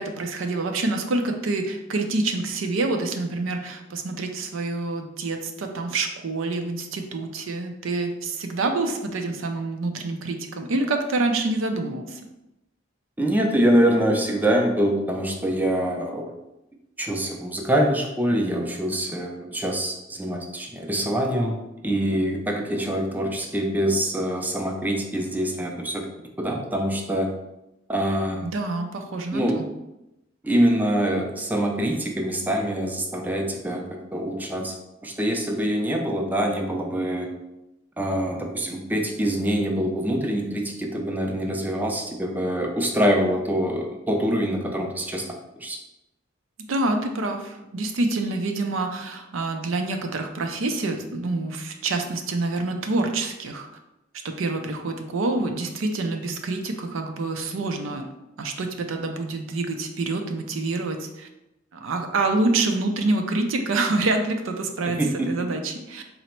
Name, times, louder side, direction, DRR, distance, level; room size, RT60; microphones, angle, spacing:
voice 1, 0.0-12.2 28.4-29.7 46.7-53.7 54.2-58.0 58.4-61.3 61.7-65.0 65.3-66.0, right 2 dB, 85° right, 4 dB, 0.5 m, -27 dB
voice 2, 13.2-16.2 17.0-21.6 21.8-26.1 26.4-27.3 27.9-28.5 29.3-29.6 30.4-33.8 34.1-34.7 35.0-37.3 38.0-45.3 45.6-45.8 64.8-65.5, equal, 10° right, 1 dB, 0.4 m, -24 dB
3.9 x 2.1 x 4.3 m, 0.92 s
head